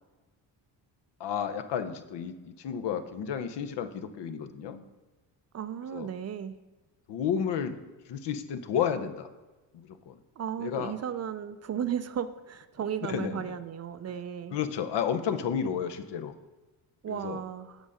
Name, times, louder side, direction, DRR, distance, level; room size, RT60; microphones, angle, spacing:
voice 1, 1.2-4.8 5.9-6.1 7.1-7.8 8.1-9.3 9.7-10.2 10.6-11.0 13.0-13.6 14.5-16.3 17.1-17.4, left 8 dB, 65° left, 9 dB, 0.8 m, -32 dB
voice 2, 5.5-6.6 10.4-14.6 17.0-17.8, right 8 dB, 35° right, 12 dB, 0.5 m, -35 dB
8.2 x 5.4 x 4.9 m, 1.2 s
cardioid pair, 90°, 44 cm